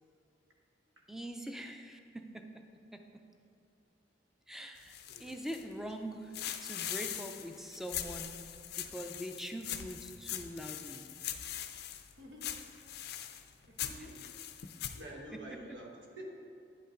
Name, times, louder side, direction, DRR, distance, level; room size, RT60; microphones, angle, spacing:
voice 1, 1.1-2.6 2.9-3.0 4.5-6.3 6.6-8.4 8.8-11.1, equal, ahead, 5 dB, 0.4 m, -43 dB
sound 1, 4.8-5.9 6.3-12.1 12.4-15.0, left 10 dB, 60° left, 0.4 m, -42 dB
voice 2, 12.2-12.6 13.5-14.4 14.9-16.3, right 1 dB, 90° right, 0 dB, 1.2 m, -48 dB
9.8 x 5.5 x 3.8 m, 2.6 s
head